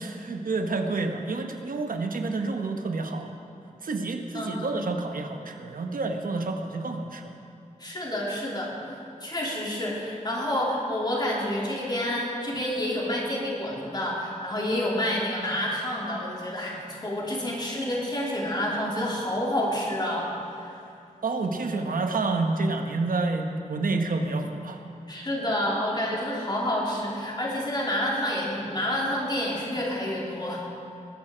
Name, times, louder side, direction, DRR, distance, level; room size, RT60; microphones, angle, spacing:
voice 1, 0.0-3.3 3.8-7.4 21.2-24.8, right 3 dB, 85° right, 4 dB, 1.0 m, -29 dB
voice 2, 4.3-4.7 7.8-20.8 25.1-30.6, left 1 dB, 30° left, -4 dB, 3.0 m, -29 dB
20.0 x 8.9 x 5.0 m, 2.5 s
wide cardioid pair, 100°, 14 cm